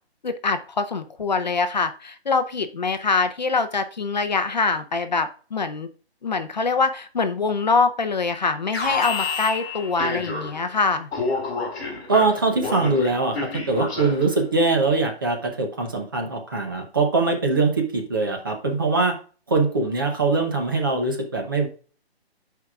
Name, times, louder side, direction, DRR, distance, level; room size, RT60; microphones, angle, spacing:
voice 1, 0.2-5.9 6.2-11.1, left 4 dB, 45° left, 9 dB, 0.6 m, -24 dB
Alarm, 8.7-10.7 11.1-14.4, left 4 dB, 20° left, 2.9 m, -29 dB
voice 2, 12.1-19.1 19.5-21.7, right 3 dB, 20° right, 2 dB, 0.8 m, -22 dB
11.0 x 4.7 x 2.4 m, 0.39 s
hypercardioid pair, 170°, 32 cm